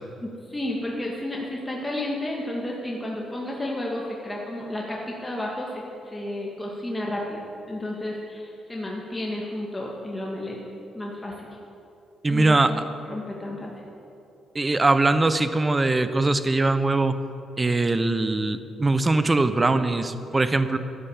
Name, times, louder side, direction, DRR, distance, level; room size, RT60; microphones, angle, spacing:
voice 1, 0.2-7.4 7.7-10.6 10.9-11.5 12.3-13.7, left 1 dB, 10° left, -3 dB, 1.9 m, -32 dB
voice 2, 12.2-12.7 14.5-17.2 17.6-20.8, right 2 dB, 20° right, 11 dB, 0.8 m, -21 dB
11.0 x 10.5 x 7.2 m, 2.7 s
cardioid pair, 90°, 0 cm